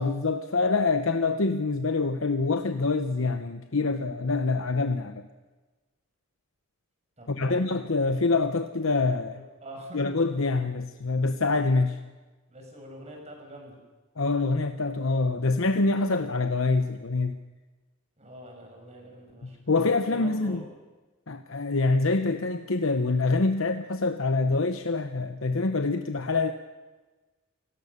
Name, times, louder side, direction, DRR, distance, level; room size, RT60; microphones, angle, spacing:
voice 1, 0.0-5.3 7.3-9.4 9.9-12.0 14.2-17.4 19.7-20.6 21.3-26.5, left 3 dB, 70° left, 7 dB, 1.0 m, -25 dB
voice 2, 7.2-7.8 9.3-10.1 12.5-13.8 18.2-19.6 20.1-20.6, equal, 30° right, 2 dB, 6.2 m, -44 dB
28.5 x 18.0 x 6.7 m, 1.2 s
head